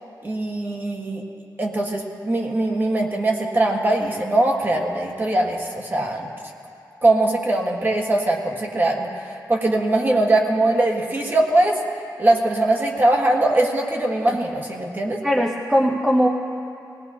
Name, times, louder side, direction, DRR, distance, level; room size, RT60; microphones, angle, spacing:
voice 1, 0.2-1.2 1.6-6.3 7.0-9.1 9.5-11.8 12.2-15.2, right 2 dB, 30° right, 0 dB, 1.5 m, -21 dB
voice 2, 15.2-16.3, equal, 5° right, 0 dB, 0.7 m, -19 dB
21.5 x 17.5 x 2.8 m, 2.6 s
wide cardioid pair, 155°, 7 cm